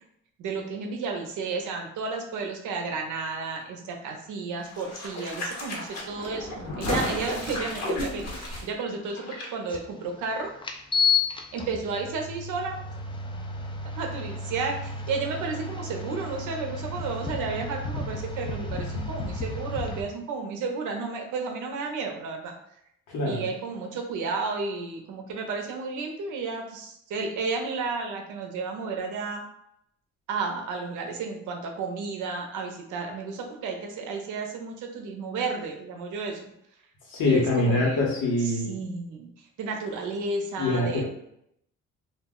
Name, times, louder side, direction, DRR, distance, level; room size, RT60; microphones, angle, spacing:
voice 1, 0.4-10.5 11.5-12.8 14.0-22.6 23.2-29.5 30.3-36.5 37.2-38.0 38.4-39.3 39.6-41.0, right 4 dB, 80° right, 3 dB, 0.6 m, -32 dB
sound 1, 4.6-9.5 9.7-9.8, left 1 dB, 55° left, 0.9 m, -33 dB
sound 2, 9.7-9.8 10.6-20.0, left 4 dB, 20° left, 0.3 m, -31 dB
voice 2, 23.1-23.5 37.1-38.7 40.6-41.0, left 2 dB, 85° left, -3 dB, 1.1 m, -24 dB
2.4 x 2.0 x 3.6 m, 0.76 s
cardioid pair, 90°, 30 cm